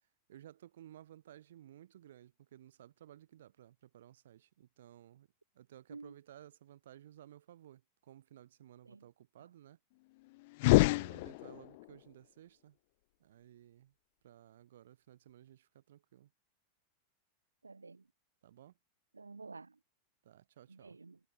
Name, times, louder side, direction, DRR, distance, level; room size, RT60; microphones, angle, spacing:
voice 1, 0.3-5.3 5.5-9.8 10.8-12.8 13.2-13.9 14.2-16.3 18.4-18.7 20.2-21.0, right 12 dB, 60° right, 6.2 m, -57 dB
sound 1, 10.5-11.8, left 23 dB, 50° left, 0.5 m, -27 dB
voice 2, 17.6-18.1 19.1-19.8 20.7-21.2, right 3 dB, 80° right, 3.8 m, -51 dB
figure-of-eight pair, 90°, 0 cm